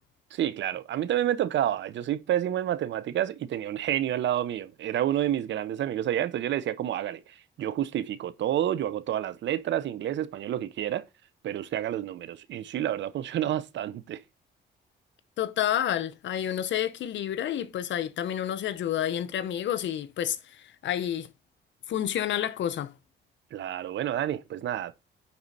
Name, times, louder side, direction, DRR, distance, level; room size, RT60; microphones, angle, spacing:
voice 1, 0.3-11.1 11.4-14.2 23.5-24.9, right 11 dB, 65° right, 0.7 m, -29 dB
voice 2, 15.4-21.3 21.9-22.9, left 10 dB, 70° left, 0.8 m, -29 dB
9.5 x 4.3 x 4.0 m
cardioid pair, 90°, 20 cm